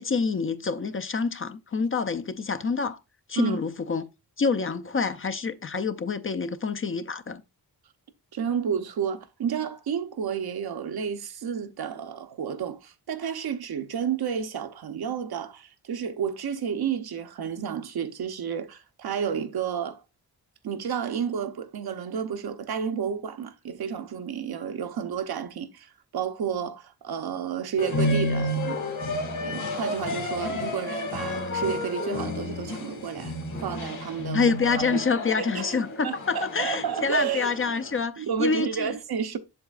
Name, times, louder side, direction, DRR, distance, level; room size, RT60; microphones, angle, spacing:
voice 1, 0.0-3.0 3.3-4.1 4.4-7.4 34.3-38.9, left 5 dB, 35° left, 0.5 m, -27 dB
voice 2, 8.3-20.0 20.6-28.8 29.1-33.3 33.6-34.4 34.8-35.0 35.4-37.5 38.2-39.4, right 7 dB, 75° right, 0.8 m, -31 dB
sound 1, 27.8-38.0, left 1 dB, 50° left, 1.7 m, -31 dB
7.7 x 7.2 x 2.4 m
wide cardioid pair, 170°, 38 cm